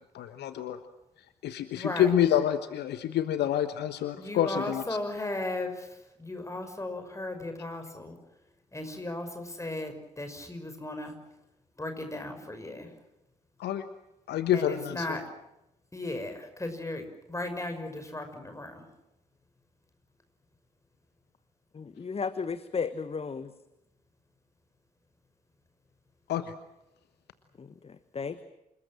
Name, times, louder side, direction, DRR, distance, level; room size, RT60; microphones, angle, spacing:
voice 1, 0.1-0.8 1.4-4.8 13.6-13.8 14.3-15.1 26.3-26.5, left 10 dB, 55° left, 11 dB, 1.2 m, -27 dB
voice 2, 1.7-2.1 4.2-8.2 8.7-11.1 11.8-12.9 14.5-15.3 15.9-18.8, left 2 dB, 15° left, 6 dB, 6.0 m, -36 dB
voice 3, 21.7-23.5 27.6-28.4, left 5 dB, 30° left, 14 dB, 1.2 m, -34 dB
27.5 x 20.0 x 7.7 m, 0.89 s
figure-of-eight pair, 40°, 20 cm